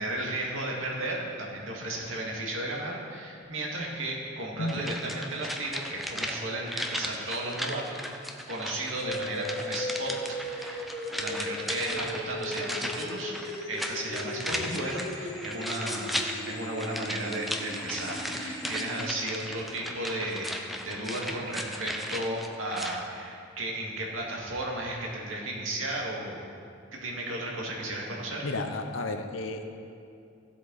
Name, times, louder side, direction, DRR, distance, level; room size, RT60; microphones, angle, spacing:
voice 1, 0.0-8.0 8.5-10.8 11.2-13.3 13.7-26.5 26.9-28.5, right 1 dB, 85° right, -2 dB, 2.1 m, -34 dB
voice 2, 4.6-4.9 14.5-14.8 28.4-29.6, left 2 dB, 85° left, 6 dB, 0.9 m, -33 dB
sound 1, 4.7-23.0 23.3-23.4, equal, ahead, 0.6 m, -36 dB
sound 2, 9.0-19.0, left 1 dB, 20° left, 2.1 m, -38 dB
15.0 x 7.9 x 4.2 m, 2.5 s
head